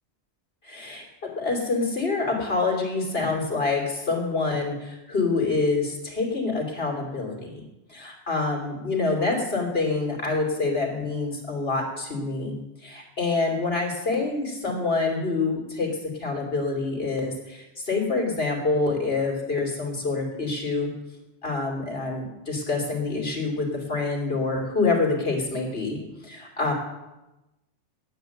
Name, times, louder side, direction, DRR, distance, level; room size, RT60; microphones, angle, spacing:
voice 1, 0.6-7.6 7.9-20.9 21.4-26.7, left 3 dB, 55° left, 0 dB, 3.1 m, -26 dB
9.1 x 9.1 x 9.1 m, 1.0 s
omnidirectional pair, 1.2 m